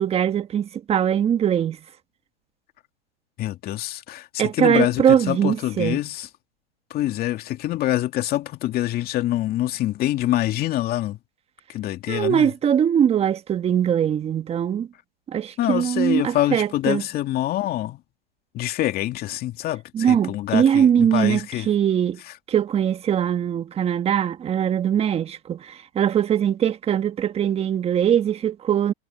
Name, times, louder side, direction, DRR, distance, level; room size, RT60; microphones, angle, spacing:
voice 1, 0.0-1.8 4.4-6.0 12.1-14.9 15.3-17.0 19.9-22.2 22.5-28.9, right 9 dB, 20° right, 1.5 m, -21 dB
voice 2, 3.4-6.3 6.9-11.2 11.7-12.5 15.6-18.0 18.5-21.7, left 14 dB, 30° left, 2.4 m, -25 dB
hypercardioid pair, 130°, 32 cm